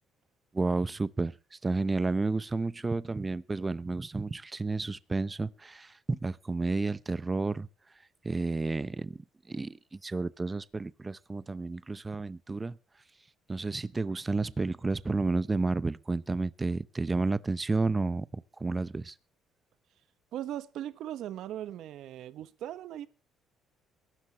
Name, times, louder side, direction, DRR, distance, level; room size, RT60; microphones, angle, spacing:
voice 1, 0.5-1.3 1.6-7.7 8.2-9.2 9.5-12.8 13.5-19.1, right 3 dB, 15° right, 0.7 m, -31 dB
voice 2, 20.3-23.1, right 12 dB, 70° right, 1.1 m, -39 dB
22.5 x 12.0 x 3.0 m
cardioid pair, 135°, 0 cm